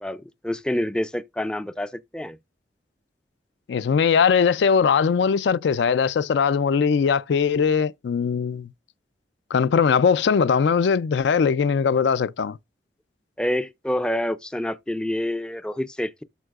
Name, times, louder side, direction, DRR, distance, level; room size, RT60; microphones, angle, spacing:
voice 1, 0.0-2.4 13.4-16.2, left 1 dB, 5° left, 0.3 m, -27 dB
voice 2, 3.7-8.7 9.5-12.6, left 6 dB, 75° left, 0.4 m, -20 dB
12.5 x 4.5 x 2.4 m
head